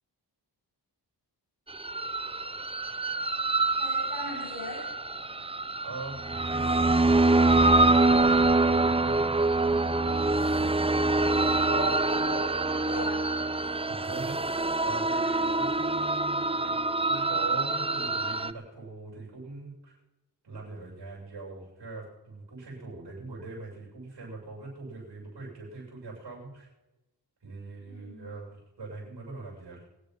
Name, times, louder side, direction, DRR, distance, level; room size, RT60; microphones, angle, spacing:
sound 1, 1.7-18.5, right 2 dB, 15° right, 0.6 m, -25 dB
voice 1, 3.8-4.9 10.8-13.8 27.9-28.3, left 1 dB, 55° left, -3 dB, 7.0 m, -39 dB
voice 2, 5.8-9.2 13.9-19.9 20.4-26.7 27.4-29.8, right 3 dB, 80° right, -4 dB, 7.8 m, -42 dB
25.0 x 9.2 x 5.6 m, 1.0 s
wide cardioid pair, 65°, 41 cm